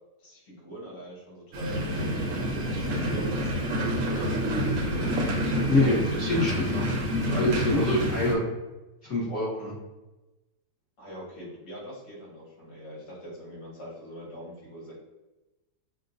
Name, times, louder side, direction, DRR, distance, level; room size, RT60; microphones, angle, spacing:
voice 1, 0.2-2.1 2.5-5.1 11.0-15.0, equal, 70° left, -5 dB, 2.2 m, -43 dB
sound 1, 1.5-8.3, equal, 60° right, 1.0 m, -28 dB
voice 2, 5.7-6.9 7.2-8.4 9.0-9.7, left 1 dB, 50° left, -7 dB, 1.2 m, -25 dB
6.3 x 2.1 x 2.6 m, 1.1 s
omnidirectional pair, 1.9 m